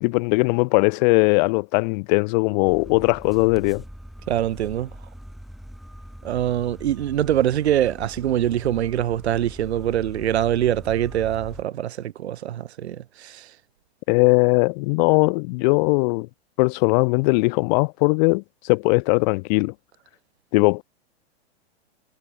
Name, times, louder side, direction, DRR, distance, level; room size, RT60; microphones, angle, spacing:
voice 1, 0.0-3.8 14.1-16.3 16.6-19.7 20.5-20.8, left 29 dB, 40° left, 0.8 m, -19 dB
sound 1, 2.6-11.6, equal, ahead, 4.1 m, -42 dB
voice 2, 4.3-4.9 6.2-13.5, right 11 dB, 75° right, 1.5 m, -24 dB
hypercardioid pair, 120°, 33 cm